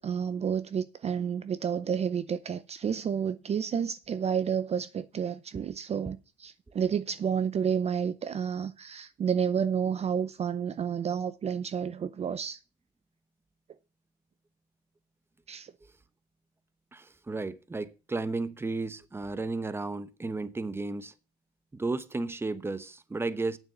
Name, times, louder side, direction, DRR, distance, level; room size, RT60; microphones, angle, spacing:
voice 1, 0.0-12.6 15.5-15.7, right 7 dB, 40° right, 0.6 m, -30 dB
voice 2, 16.9-21.1 21.7-23.6, right 3 dB, 15° right, 0.9 m, -33 dB
9.2 x 7.1 x 6.8 m
cardioid pair, 110°, 17 cm